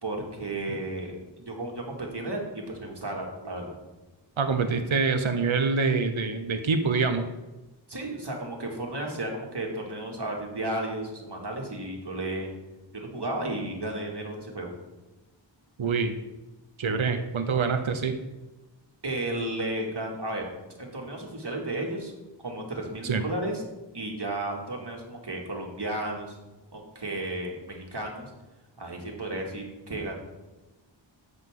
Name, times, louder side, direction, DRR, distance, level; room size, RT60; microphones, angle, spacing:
voice 1, 0.0-3.7 7.9-12.5 12.9-14.7 19.0-20.5 20.8-22.1 22.4-23.6 23.9-26.4 26.7-28.3 28.8-30.1, right 1 dB, 60° right, 0 dB, 2.1 m, -33 dB
voice 2, 4.4-7.3 15.8-16.1 16.8-18.2 23.0-23.2, right 4 dB, 80° right, 7 dB, 0.8 m, -25 dB
11.0 x 8.0 x 3.7 m, 1.1 s
wide cardioid pair, 50°, 47 cm